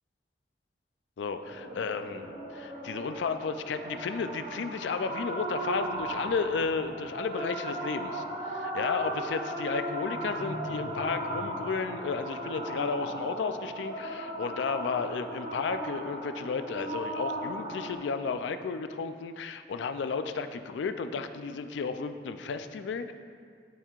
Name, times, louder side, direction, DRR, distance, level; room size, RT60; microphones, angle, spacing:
voice 1, 1.2-23.1, left 5 dB, 85° left, 9 dB, 0.4 m, -33 dB
sound 1, 1.4-18.0, right 1 dB, 40° right, 1.3 m, -37 dB
12.0 x 4.5 x 2.4 m, 2.2 s
head